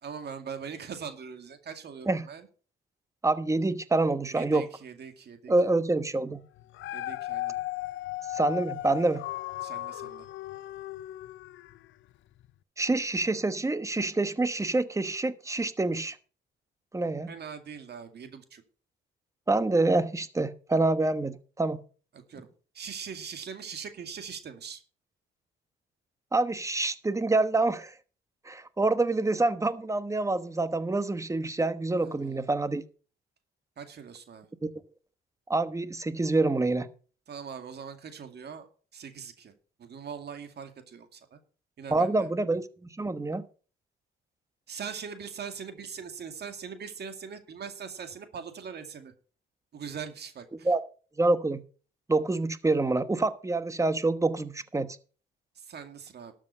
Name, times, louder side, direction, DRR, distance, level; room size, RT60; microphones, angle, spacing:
voice 1, 0.0-2.5 4.3-5.8 6.9-7.5 9.6-10.3 17.3-18.6 22.3-22.5 22.7-24.8 32.0-32.5 33.8-34.5 37.3-38.7 38.9-39.5 39.8-41.4 41.8-42.3 44.7-49.1 49.7-50.7 55.6-56.3, right 6 dB, 55° right, 7 dB, 2.2 m, -41 dB
voice 2, 3.2-4.7 5.5-6.4 8.3-9.2 12.8-16.2 16.9-17.3 19.5-21.8 26.3-27.9 28.5-32.8 34.6-34.7 35.5-36.9 41.9-42.7 43.0-43.4 50.6-50.8 51.2-51.6 52.1-54.9, right 2 dB, 15° right, 13 dB, 1.1 m, -26 dB
Dog, 6.6-11.9 12.4-12.5, left 16 dB, 75° left, 0.6 m, -36 dB
12.5 x 7.6 x 5.5 m, 0.39 s
cardioid pair, 90°, 20 cm